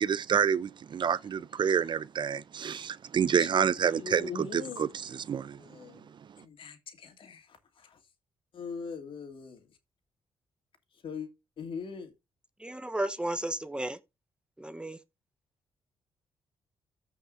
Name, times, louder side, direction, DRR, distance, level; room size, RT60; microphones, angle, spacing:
voice 1, 0.0-4.2 4.5-4.9 5.3-5.6 6.4-6.5, right 7 dB, 55° right, 0.6 m, -28 dB
voice 2, 3.8-4.9 5.6-6.1 6.4-8.1 8.5-9.8 10.9-11.3 11.6-12.1, left 5 dB, 65° left, 2.7 m, -42 dB
voice 3, 12.6-14.0 14.6-15.0, right 1 dB, 10° right, 1.0 m, -33 dB
14.5 x 5.8 x 2.6 m
cardioid pair, 80°, 10 cm